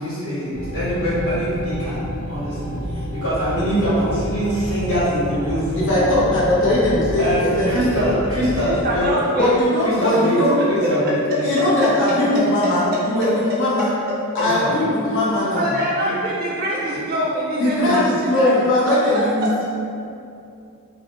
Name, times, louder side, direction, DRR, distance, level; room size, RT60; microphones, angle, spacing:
voice 1, 0.0-6.0 7.2-9.0 9.8-10.4 10.7-11.7 14.4-14.7 16.0-16.1 17.8-17.9, equal, 70° left, -12 dB, 1.3 m, -23 dB
sound 1, 0.5-8.8, equal, 15° left, 0.5 m, -29 dB
voice 2, 5.7-7.9 9.4-10.6 11.4-13.9 14.3-15.7 17.6-19.7, left 1 dB, 55° left, -8 dB, 0.6 m, -20 dB
voice 3, 8.8-9.6 10.6-10.7 11.6-11.9 12.3-12.4 12.9-13.3 14.1-14.5 15.5-18.6 18.8-19.0 19.4-19.7, equal, 45° right, -7 dB, 0.4 m, -24 dB
2.6 x 2.1 x 3.0 m, 2.5 s
head